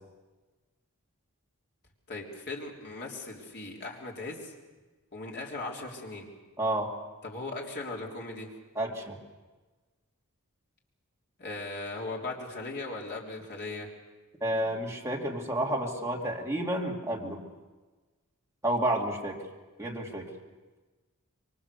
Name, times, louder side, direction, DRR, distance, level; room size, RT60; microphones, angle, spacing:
voice 1, 2.1-4.5 5.1-6.3 7.2-8.5 11.4-13.9, left 2 dB, 50° left, -1 dB, 3.6 m, -38 dB
voice 2, 6.6-6.9 8.8-9.2 14.4-17.4 18.6-19.4 19.8-20.3, right 1 dB, 15° right, -1 dB, 2.7 m, -30 dB
25.5 x 23.5 x 7.0 m, 1.3 s
head